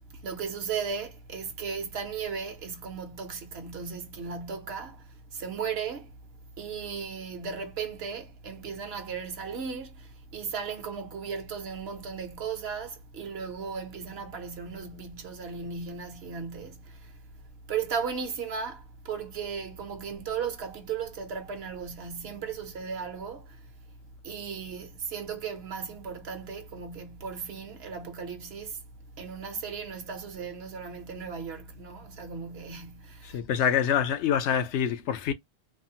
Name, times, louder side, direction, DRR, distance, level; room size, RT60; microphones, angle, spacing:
voice 1, 0.1-6.2 6.6-17.2 17.7-23.7 24.2-28.8 29.1-33.4, right 6 dB, 65° right, 1.0 m, -36 dB
voice 2, 33.2-35.3, left 8 dB, 80° left, 0.9 m, -26 dB
3.4 x 2.0 x 2.7 m
omnidirectional pair, 1.1 m